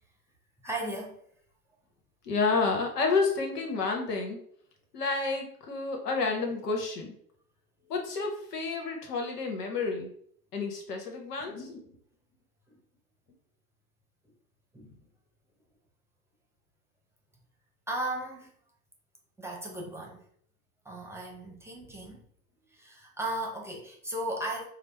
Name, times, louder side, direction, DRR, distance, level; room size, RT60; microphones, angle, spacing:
voice 1, 0.6-1.2 12.7-12.8 14.7-15.0 17.9-18.5 19.4-20.2 20.8-22.2 22.7-24.6, right 1 dB, 5° right, -1 dB, 0.8 m, -36 dB
voice 2, 2.2-4.4 4.9-7.1 7.9-10.1 10.5-11.8, left 4 dB, 85° left, 2 dB, 1.1 m, -30 dB
4.8 x 2.0 x 3.4 m, 0.63 s
hypercardioid pair, 95°, 46 cm